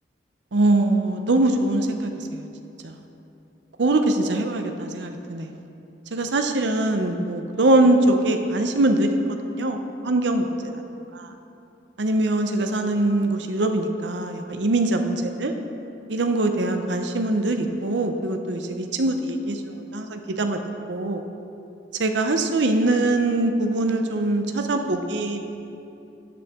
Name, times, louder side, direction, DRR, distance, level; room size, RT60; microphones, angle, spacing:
voice 1, 0.5-2.5 2.8-3.0 3.8-5.5 6.1-9.1 9.5-9.8 10.0-10.4 11.1-11.3 12.0-15.5 16.1-20.6 20.9-21.2 22.0-25.4, right 2 dB, 75° right, 5 dB, 0.7 m, -22 dB
13.0 x 8.6 x 3.6 m, 2.7 s
head